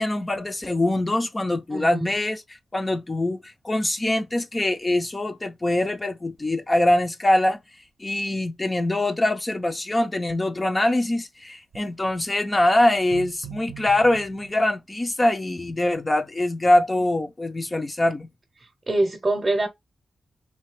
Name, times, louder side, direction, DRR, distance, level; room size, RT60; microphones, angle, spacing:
voice 1, 0.0-7.6 8.0-18.3, left 1 dB, 20° left, 0.4 m, -23 dB
voice 2, 1.7-2.1 18.9-19.7, right 2 dB, 35° right, 0.7 m, -24 dB
sound 1, 6.4-6.5 6.8-6.9 11.7-12.2 12.9-14.6, right 9 dB, 90° right, 0.6 m, -41 dB
3.2 x 2.7 x 3.2 m
wide cardioid pair, 115°, 0 cm